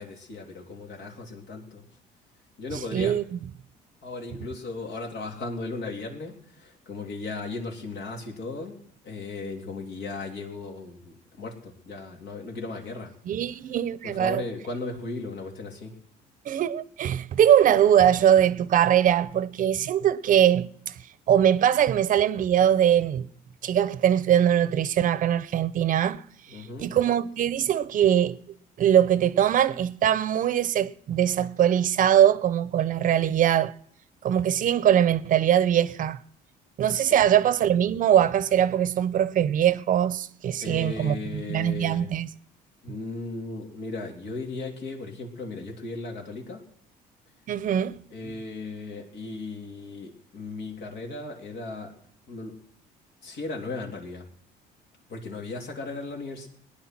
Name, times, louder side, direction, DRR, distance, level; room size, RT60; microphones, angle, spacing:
voice 1, 0.0-1.8 2.6-3.1 4.0-8.8 9.0-13.1 14.0-15.9 26.5-26.9 37.1-37.2 40.6-42.1 42.8-46.6 48.1-51.9 52.3-52.6 53.2-54.3 55.1-56.5, left 3 dB, 75° left, 3.3 m, -36 dB
voice 2, 2.7-3.4 13.3-14.4 16.5-20.7 21.3-23.3 23.6-26.2 26.5-28.4 28.8-33.7 34.2-36.2 36.8-42.3 47.5-48.0, right 10 dB, 50° right, 0.7 m, -22 dB
18.5 x 10.0 x 6.0 m
cardioid pair, 110°, 17 cm